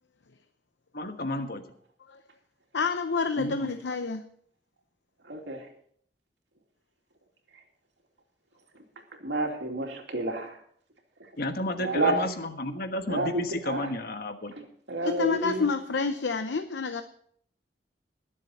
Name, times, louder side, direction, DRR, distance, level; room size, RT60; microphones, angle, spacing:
voice 1, 0.9-1.6 3.4-3.7 11.4-14.5, left 1 dB, 60° left, 7 dB, 1.3 m, -32 dB
voice 2, 2.7-4.2 15.0-17.0, left 4 dB, 80° left, 8 dB, 0.7 m, -28 dB
voice 3, 5.2-5.7 8.7-8.9 9.2-10.6 11.8-12.2 13.1-13.8 14.6-15.7, right 2 dB, 85° right, 2 dB, 2.6 m, -30 dB
21.5 x 7.5 x 4.2 m, 0.62 s
head